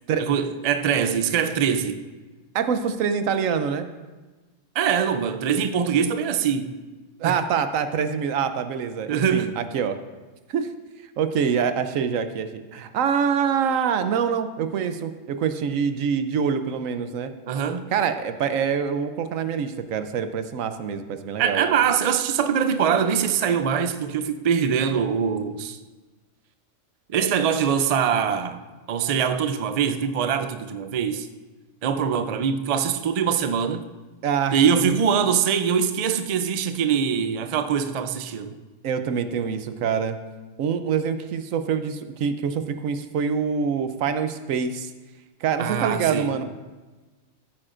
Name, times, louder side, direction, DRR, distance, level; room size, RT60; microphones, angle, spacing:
voice 1, 0.2-2.0 4.7-6.7 7.2-7.4 9.1-9.5 17.5-17.9 21.4-25.8 27.1-28.6 28.9-31.3 31.8-33.8 34.5-38.5 45.6-46.3, right 7 dB, 60° right, 0.4 m, -23 dB
voice 2, 2.5-3.9 7.2-10.0 10.5-10.7 11.2-17.3 17.9-21.7 34.2-35.0 38.8-40.2 40.6-44.9 45.4-46.4, right 7 dB, 90° right, 1.1 m, -25 dB
15.0 x 8.9 x 2.5 m
omnidirectional pair, 1.3 m